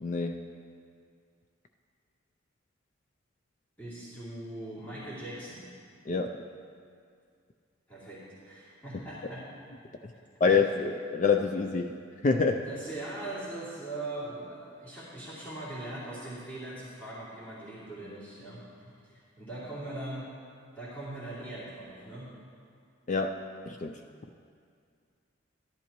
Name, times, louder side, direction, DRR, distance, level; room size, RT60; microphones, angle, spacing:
voice 1, 0.0-0.5 6.1-6.4 10.4-11.9 12.2-12.7 23.1-24.0, left 5 dB, 40° left, 5 dB, 0.3 m, -27 dB
voice 2, 3.8-5.6 7.9-9.4 12.6-20.3 20.7-22.3, right 1 dB, 10° left, -11 dB, 2.7 m, -41 dB
13.5 x 11.0 x 3.0 m, 2.3 s
head